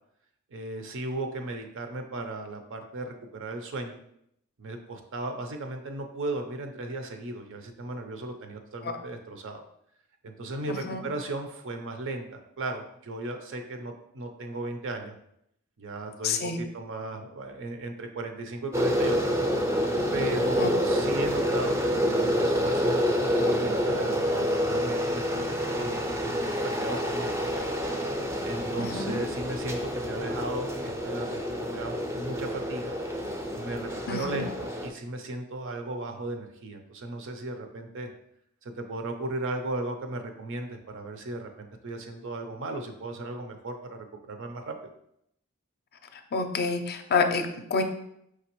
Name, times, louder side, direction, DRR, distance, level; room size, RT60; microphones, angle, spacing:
voice 1, 0.5-4.0 4.6-9.6 10.2-15.1 15.8-19.2 20.1-23.0 23.4-27.6 28.4-32.9 33.5-38.1 38.6-44.7, right 2 dB, 60° right, 5 dB, 0.6 m, -36 dB
voice 2, 10.7-11.1 16.2-16.7 20.6-20.7 28.8-29.1 34.1-34.5 46.1-47.8, left 4 dB, 45° left, 6 dB, 0.5 m, -28 dB
sound 1, 18.7-34.9, equal, 10° right, 0.4 m, -28 dB
4.9 x 3.2 x 3.0 m, 0.74 s
head